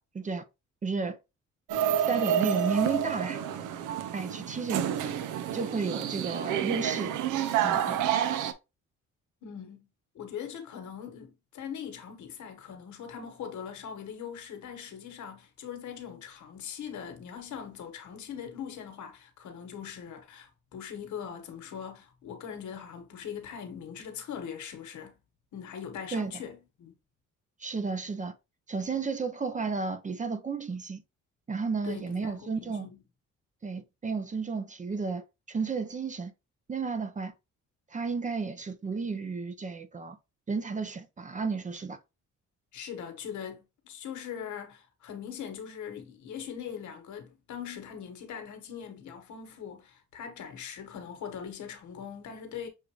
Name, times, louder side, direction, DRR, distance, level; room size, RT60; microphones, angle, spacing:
voice 1, 0.8-1.2 2.0-3.4 4.1-5.1 5.5-7.2 7.6-8.0 26.1-26.3 27.6-28.3 28.7-31.0 31.5-32.9 33.6-36.3 36.7-37.3 37.9-40.2 40.5-42.0, right 4 dB, 25° right, 0.5 m, -32 dB
sound 1, 1.7-8.5, right 9 dB, 80° right, 0.6 m, -29 dB
voice 2, 9.4-9.9 10.1-25.2 25.5-26.9 31.8-33.0 42.7-52.7, left 8 dB, 70° left, 1.3 m, -41 dB
6.4 x 2.5 x 3.0 m
cardioid pair, 90°, 30 cm